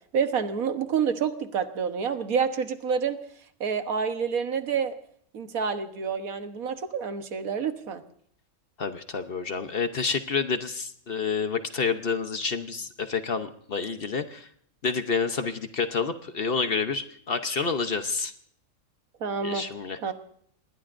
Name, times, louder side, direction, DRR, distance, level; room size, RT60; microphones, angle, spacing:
voice 1, 0.1-3.2 3.6-4.9 5.3-8.0 19.2-19.6 20.0-20.1, right 6 dB, 80° right, 8 dB, 1.6 m, -28 dB
voice 2, 8.8-14.5 14.8-18.3 19.4-20.1, left 5 dB, 45° left, 9 dB, 1.0 m, -29 dB
26.5 x 20.5 x 2.6 m, 0.62 s
omnidirectional pair, 1.5 m